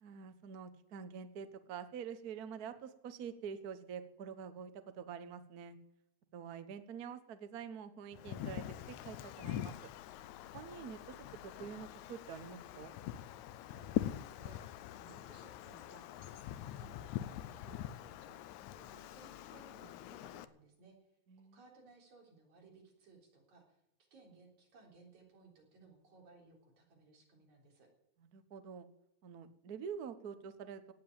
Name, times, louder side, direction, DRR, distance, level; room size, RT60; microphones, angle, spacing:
voice 1, 0.0-5.8 6.3-9.7 10.5-11.2 11.4-13.0 21.3-21.6 28.3-28.9 29.2-30.9, right 7 dB, 90° right, 10 dB, 0.8 m, -46 dB
Wind, 8.1-20.5, left 12 dB, 80° left, 2.1 m, -44 dB
voice 2, 13.5-21.0 21.4-23.8 24.1-27.9, right 3 dB, 70° right, 0 dB, 5.1 m, -61 dB
17.5 x 7.9 x 8.8 m, 0.82 s
omnidirectional pair, 3.4 m